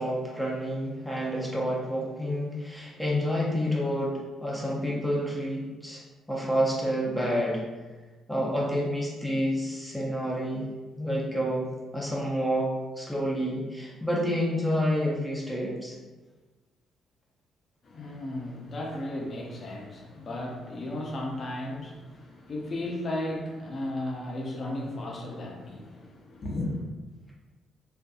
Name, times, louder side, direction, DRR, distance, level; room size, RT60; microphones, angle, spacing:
voice 1, 0.0-6.0 6.3-7.6 8.3-10.7 11.0-15.9, equal, 5° left, -4 dB, 0.6 m, -29 dB
voice 2, 17.8-26.8, left 1 dB, 45° left, -1 dB, 0.6 m, -35 dB
2.5 x 2.5 x 2.3 m, 1.3 s
cardioid pair, 90°, 0 cm